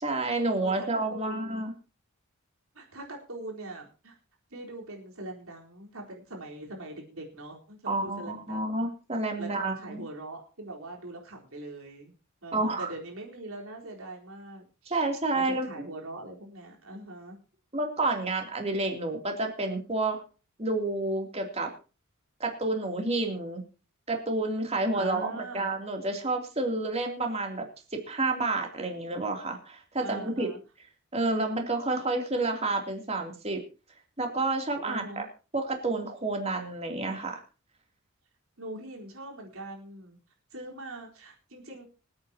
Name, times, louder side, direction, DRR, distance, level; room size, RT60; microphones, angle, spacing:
voice 1, 0.0-1.7 7.9-10.0 12.5-12.9 14.9-15.9 17.7-20.2 20.6-21.7 22.4-23.6 24.1-27.6 28.0-30.5 31.1-33.6 34.2-35.0 35.5-37.4, right 2 dB, 30° right, 2 dB, 3.0 m, -29 dB
voice 2, 0.6-1.7 2.7-4.2 4.5-8.9 9.4-12.1 12.4-15.0 15.3-17.4 24.9-25.7 30.0-30.6 34.8-35.3 38.6-40.2 40.5-41.8, right 2 dB, 85° right, 0 dB, 4.1 m, -42 dB
26.0 x 9.0 x 2.9 m, 0.34 s
head